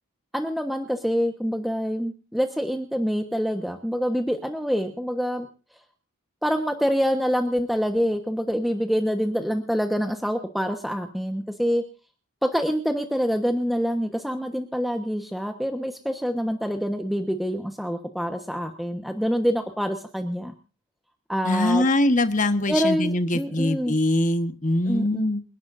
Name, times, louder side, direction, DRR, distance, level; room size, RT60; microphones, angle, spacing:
voice 1, 0.3-5.5 6.4-11.8 12.4-20.5 21.3-21.8 22.7-23.9 24.9-25.3, equal, ahead, 5 dB, 1.2 m, -26 dB
voice 2, 21.4-25.4, left 1 dB, 35° left, 10 dB, 1.3 m, -22 dB
28.5 x 11.5 x 2.6 m, 0.36 s
head